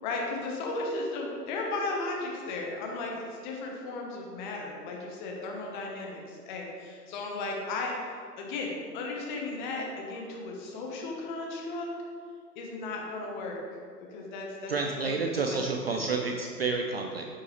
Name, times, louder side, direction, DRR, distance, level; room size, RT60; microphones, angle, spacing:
voice 1, 0.0-7.9 8.4-11.9 12.6-13.6 14.1-15.6 15.9-16.1, left 3 dB, 30° left, -1 dB, 1.2 m, -35 dB
voice 2, 14.7-17.3, right 4 dB, 40° right, 1 dB, 0.4 m, -30 dB
8.1 x 5.2 x 3.2 m, 2.2 s
figure-of-eight pair, 125°, 50 cm